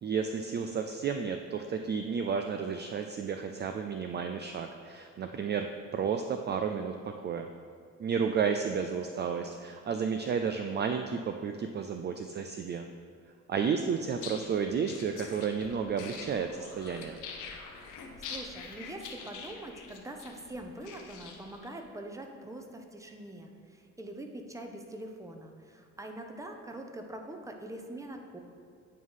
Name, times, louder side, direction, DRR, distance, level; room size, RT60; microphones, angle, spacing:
voice 1, 0.0-7.0 7.2-7.5 8.0-12.9 13.5-17.2, right 6 dB, 35° right, 6 dB, 0.4 m, -32 dB
voice 2, 9.2-9.6 13.6-14.1 18.3-28.4, right 1 dB, 10° right, 3 dB, 0.7 m, -44 dB
sound 1, 14.1-21.7, left 5 dB, 85° left, 0.9 m, -45 dB
9.2 x 3.2 x 5.5 m, 2.2 s
cardioid pair, 90°, 30 cm